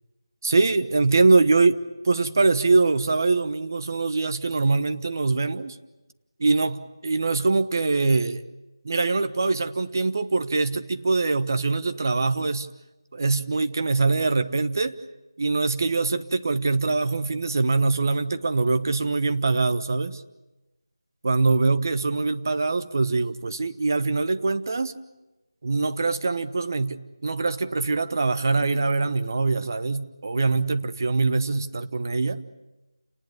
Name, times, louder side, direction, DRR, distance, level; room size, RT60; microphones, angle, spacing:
voice 1, 0.4-5.8 6.4-8.4 8.8-12.7 13.1-15.0 15.4-20.2 21.2-25.0 25.6-32.4, right 3 dB, 45° right, 10 dB, 1.2 m, -23 dB
29.0 x 19.5 x 9.8 m, 1.0 s
figure-of-eight pair, 165°, 3 cm